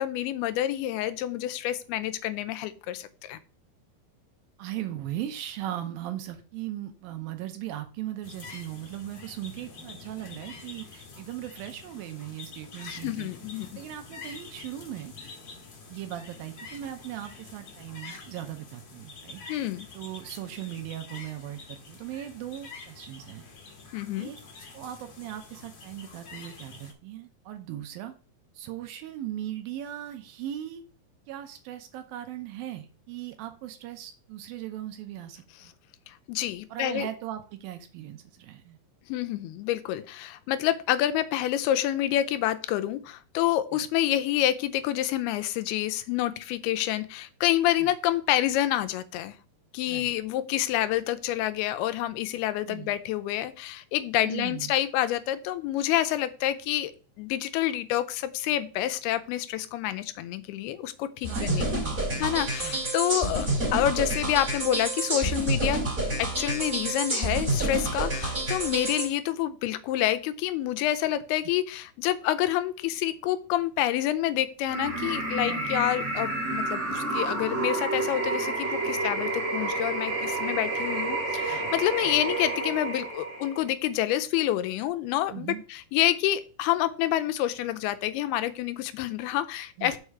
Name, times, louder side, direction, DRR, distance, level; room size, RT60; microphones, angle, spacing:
voice 1, 0.0-3.4 12.8-13.7 19.5-19.9 23.9-24.3 36.1-37.1 39.1-49.4 49.7-56.9 57.2-61.8 62.2-65.8 66.2-90.0, left 13 dB, 90° left, 12 dB, 2.6 m, -28 dB
voice 2, 4.6-13.3 13.8-15.1 15.9-19.4 19.9-23.4 24.2-24.4 24.7-28.1 28.6-30.8 31.3-35.7 36.7-38.8 47.8-47.9 49.9-50.1 52.7-53.0 54.2-54.8 61.3-62.8 75.4-75.7 81.5-81.7 82.0-82.2 85.3-85.6 89.8-90.0, right 12 dB, 75° right, 7 dB, 2.4 m, -38 dB
sound 1, 8.2-26.9, left 4 dB, 55° left, 1.2 m, -46 dB
sound 2, 61.2-69.1, right 1 dB, 20° right, 1.7 m, -28 dB
sound 3, 74.6-83.7, right 2 dB, 55° right, 0.8 m, -30 dB
6.5 x 4.9 x 5.9 m, 0.37 s
omnidirectional pair, 4.5 m